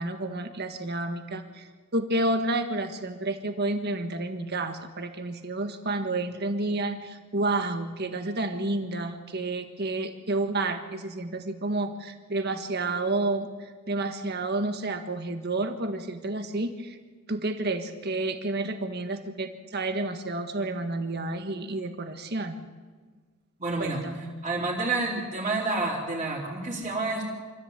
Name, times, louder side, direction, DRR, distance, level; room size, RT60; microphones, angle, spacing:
voice 1, 0.0-17.0 17.3-22.6 23.8-24.2, right 2 dB, 50° right, 7 dB, 1.7 m, -30 dB
voice 2, 23.6-24.0 24.4-27.2, right 3 dB, 30° right, -7 dB, 3.8 m, -29 dB
26.0 x 14.5 x 8.3 m, 1.4 s
head